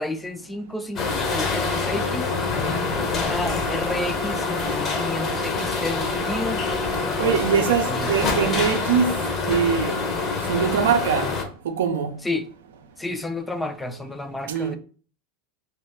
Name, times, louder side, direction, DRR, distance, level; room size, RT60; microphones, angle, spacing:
voice 1, 0.0-2.3 3.1-8.7 12.2-12.5 13.0-14.8, left 2 dB, 10° left, 0.3 m, -31 dB
sound 1, 1.0-11.4, left 3 dB, 35° left, 0.7 m, -26 dB
voice 2, 7.2-9.2 9.5-10.0 10.5-11.3 11.6-12.1 14.5-14.8, right 7 dB, 85° right, 0.5 m, -22 dB
2.8 x 2.3 x 3.5 m
supercardioid pair, 115°, 0 cm